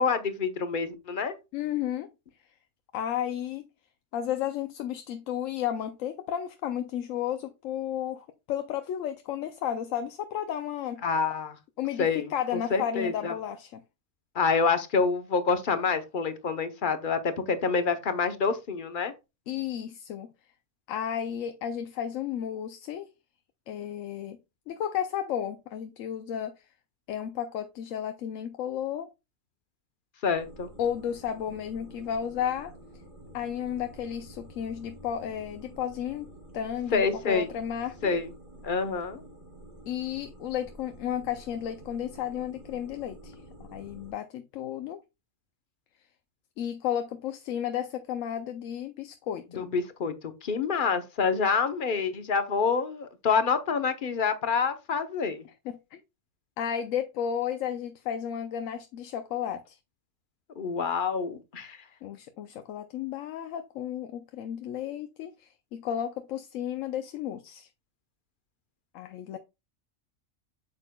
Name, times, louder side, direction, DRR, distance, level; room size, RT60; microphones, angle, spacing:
voice 1, 0.0-1.4 11.0-11.6 12.0-13.3 14.3-19.1 30.2-30.7 36.9-37.5 38.0-38.3 38.6-39.2 49.5-50.1 50.4-55.4 60.6-61.8, left 5 dB, 45° left, 0.9 m, -27 dB
voice 2, 1.5-2.1 2.9-3.6 4.1-11.0 11.8-13.8 19.5-20.3 20.9-23.1 23.7-24.4 24.7-26.6 27.1-29.1 30.8-32.7 33.3-38.0 39.9-45.0 46.6-49.6 55.6-56.0 56.6-59.8 62.0-67.7 68.9-69.4, left 9 dB, 85° left, 1.0 m, -33 dB
sound 1, 30.3-44.1, right 1 dB, 25° right, 2.9 m, -49 dB
8.1 x 6.8 x 2.2 m
omnidirectional pair, 1.3 m